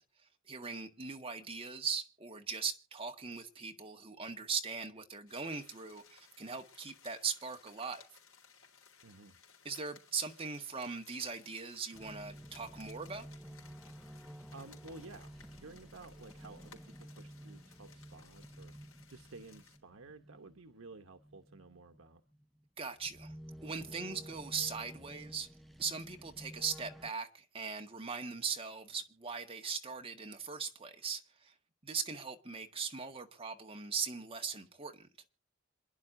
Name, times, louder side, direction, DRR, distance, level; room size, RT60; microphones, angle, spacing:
voice 1, 0.5-8.0 9.6-13.3 22.8-23.3 23.6-25.5 25.8-31.5 31.8-35.1, right 5 dB, 30° right, 1.7 m, -40 dB
sound 1, 5.3-19.8, left 7 dB, 75° left, 4.0 m, -61 dB
voice 2, 9.0-9.4 14.2-22.2, right 3 dB, 85° right, 1.1 m, -53 dB
sound 2, 11.9-27.1, equal, ahead, 1.0 m, -52 dB
27.0 x 10.5 x 2.7 m
head